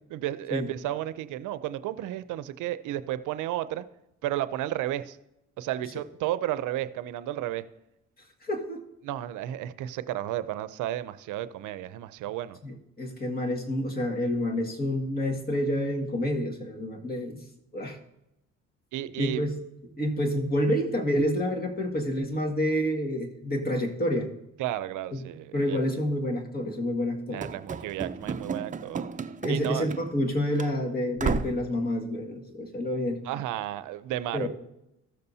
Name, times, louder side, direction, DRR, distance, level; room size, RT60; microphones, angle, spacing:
voice 1, 0.1-3.9 4.2-5.2 5.6-7.6 9.0-12.6 18.9-19.4 24.6-25.8 27.3-29.0 29.5-29.9 33.2-34.5, right 13 dB, 85° right, 14 dB, 0.5 m, -32 dB
voice 2, 8.4-8.8 12.6-17.4 17.7-18.0 19.2-19.6 20.0-24.3 25.1-25.2 25.5-27.4 29.4-33.2 34.3-34.5, equal, 30° left, 1 dB, 1.9 m, -28 dB
Run / Slam, 27.4-30.3 30.6-30.7 31.2-31.7, right 5 dB, 25° right, 0.5 m, -33 dB
15.0 x 6.8 x 2.7 m, 0.88 s
cardioid pair, 90°, 30 cm